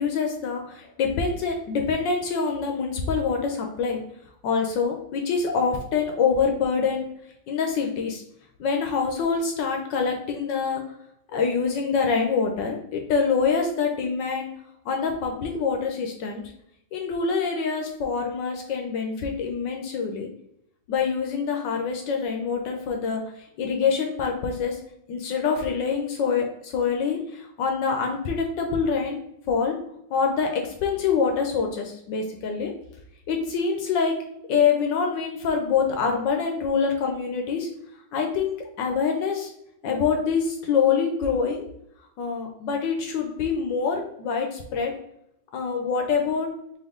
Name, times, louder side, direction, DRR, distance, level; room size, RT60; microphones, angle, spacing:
voice 1, 0.0-4.0 4.4-7.0 7.5-8.2 8.6-10.8 11.3-14.5 14.9-16.4 16.9-20.3 20.9-23.2 23.6-24.8 25.1-29.2 29.5-29.8 30.1-32.7 33.3-34.1 34.5-37.7 38.1-39.5 39.8-41.7 42.2-44.9 45.5-46.5, left 5 dB, 70° left, 3 dB, 1.2 m, -25 dB
4.4 x 3.0 x 3.6 m, 0.78 s
omnidirectional pair, 2.2 m